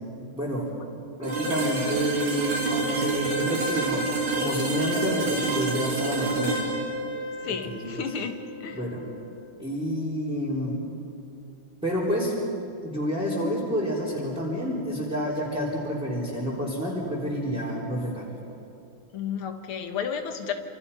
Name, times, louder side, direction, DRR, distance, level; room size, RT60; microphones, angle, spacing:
voice 1, 0.3-6.6 7.4-8.1 8.7-9.0 9.6-10.7 11.8-12.3 12.8-18.3, equal, ahead, -7 dB, 3.9 m, -29 dB
sound 1, 1.2-9.1, right 2 dB, 65° right, 4.0 m, -28 dB
voice 2, 7.4-8.8 19.1-20.5, left 7 dB, 80° left, 6 dB, 2.4 m, -32 dB
28.0 x 27.5 x 5.7 m, 2.7 s
omnidirectional pair, 2.3 m